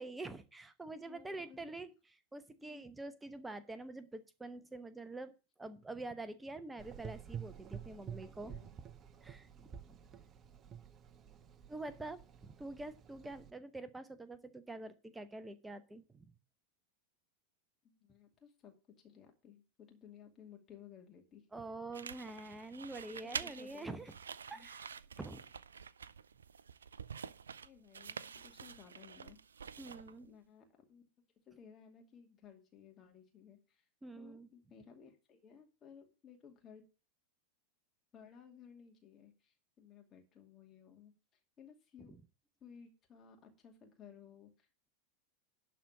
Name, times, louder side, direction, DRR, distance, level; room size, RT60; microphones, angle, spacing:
voice 1, 0.0-1.9 2.3-5.3 5.6-8.5 9.2-10.0 11.7-16.3 21.5-24.1 24.5-24.9 25.2-25.4 29.8-30.3 34.0-34.5 42.1-42.2, right 2 dB, 10° right, 12 dB, 0.9 m, -46 dB
voice 2, 0.9-1.8 2.6-2.9 7.7-8.7 9.9-10.4 17.8-21.5 23.2-24.0 24.5-24.7 27.6-29.4 30.2-31.0 31.5-33.9 34.1-36.8 38.1-42.1 42.6-44.7, left 7 dB, 25° left, 2 dB, 2.6 m, -58 dB
Gurgling / Engine, 6.8-13.5, right 8 dB, 25° right, 0.8 m, -50 dB
sound 1, 21.9-30.3, right 6 dB, 70° right, 0.4 m, -48 dB
11.5 x 4.3 x 7.3 m, 0.32 s
figure-of-eight pair, 90°, 0 cm